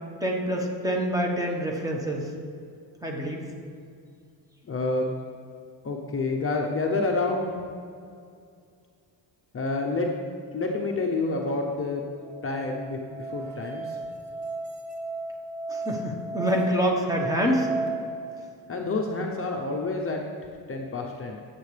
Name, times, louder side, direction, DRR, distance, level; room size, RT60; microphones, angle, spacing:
voice 1, 0.2-2.3 3.0-3.5 15.7-17.7, equal, 10° right, -1 dB, 1.3 m, -26 dB
voice 2, 4.7-5.1 5.8-7.5 9.5-10.1 10.5-12.1 12.4-14.0 18.7-20.2 20.7-21.4, left 3 dB, 30° left, 1 dB, 0.8 m, -28 dB
Musical instrument, 12.2-17.9, right 3 dB, 40° right, 1.6 m, -34 dB
15.5 x 7.5 x 3.3 m, 2.3 s
cardioid pair, 140°, 42 cm